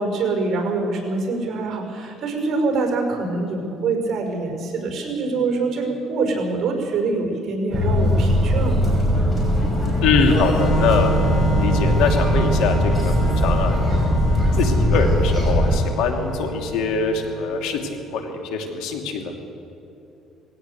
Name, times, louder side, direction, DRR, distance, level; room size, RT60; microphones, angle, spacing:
voice 1, 0.0-8.8, right 3 dB, 50° right, 3 dB, 5.4 m, -24 dB
sound 1, 7.7-15.8, equal, 10° left, 6.1 m, -20 dB
voice 2, 10.0-14.1 14.5-17.8 18.1-19.3, left 4 dB, 85° left, 3 dB, 2.7 m, -23 dB
Organ, 10.3-17.8, right 2 dB, 50° left, 5.0 m, -28 dB
20.0 x 17.0 x 8.1 m, 2.9 s
cardioid pair, 135°, 0 cm